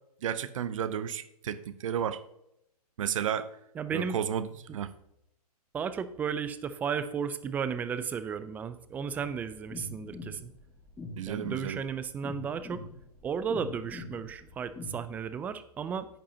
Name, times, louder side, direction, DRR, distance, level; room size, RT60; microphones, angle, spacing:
voice 1, 0.2-2.2 3.0-3.5 3.9-4.9 11.2-11.8, right 9 dB, 55° right, 14 dB, 0.8 m, -32 dB
voice 2, 3.8-4.2 5.7-10.5 11.3-12.8 13.2-16.1, right 6 dB, 10° right, 13 dB, 0.3 m, -34 dB
sound 1, 9.1-15.0, left 2 dB, 10° left, 1.5 m, -43 dB
10.5 x 8.6 x 2.8 m, 0.79 s
hypercardioid pair, 130°, 20 cm